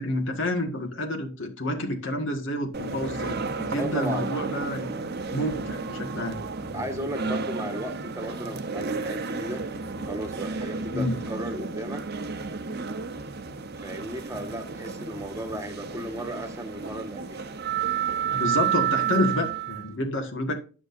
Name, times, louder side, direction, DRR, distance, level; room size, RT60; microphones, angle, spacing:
voice 1, 0.0-4.9 5.3-6.4 10.9-11.2 18.3-20.6, left 1 dB, 60° left, 1.8 m, -29 dB
sound 1, 2.7-19.9, right 6 dB, 50° right, 0.9 m, -31 dB
voice 2, 3.7-4.4 6.7-9.6 10.0-12.0 13.8-17.4, right 1 dB, 15° right, 1.5 m, -35 dB
11.5 x 6.4 x 2.6 m
head